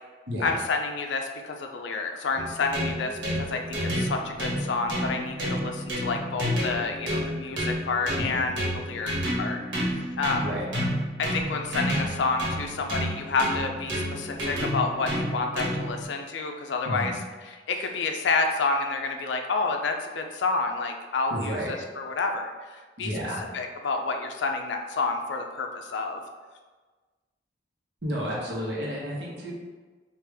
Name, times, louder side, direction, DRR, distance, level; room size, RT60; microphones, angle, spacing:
voice 1, 0.4-9.6 10.2-10.4 11.2-17.1 17.7-23.1 23.5-26.2, left 4 dB, 75° left, 4 dB, 0.4 m, -29 dB
sound 1, 2.3-16.0, equal, 85° right, 1.3 m, -30 dB
voice 2, 21.3-21.7 23.0-23.4 28.0-29.5, equal, 65° right, -4 dB, 1.0 m, -31 dB
5.0 x 2.5 x 3.4 m, 1.3 s
head